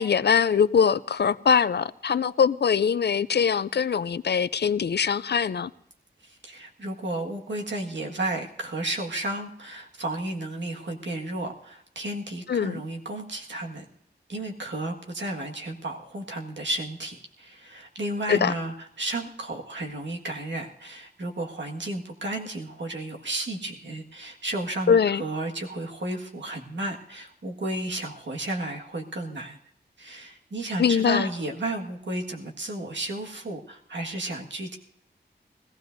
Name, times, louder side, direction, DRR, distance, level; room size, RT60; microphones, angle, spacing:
voice 1, 0.0-5.7 12.5-12.8 18.3-18.5 24.9-25.2 30.8-31.3, left 7 dB, 65° left, 0.4 m, -22 dB
voice 2, 6.2-13.8 14.3-29.6 30.0-34.8, right 1 dB, 80° right, 1.7 m, -33 dB
21.0 x 15.5 x 2.6 m
wide cardioid pair, 75°, 19 cm